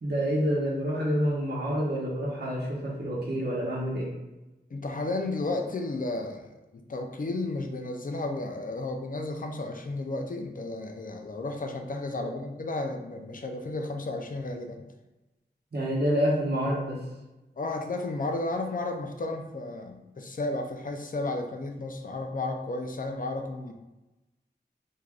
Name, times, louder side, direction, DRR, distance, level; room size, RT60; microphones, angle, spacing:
voice 1, 0.0-4.1 12.2-12.4 15.7-17.0, equal, 70° right, -5 dB, 0.9 m, -28 dB
voice 2, 4.7-6.5 6.9-14.8 17.6-23.7, left 2 dB, 50° left, 4 dB, 0.4 m, -33 dB
3.3 x 2.6 x 2.3 m, 1.0 s
wide cardioid pair, 60°, 18 cm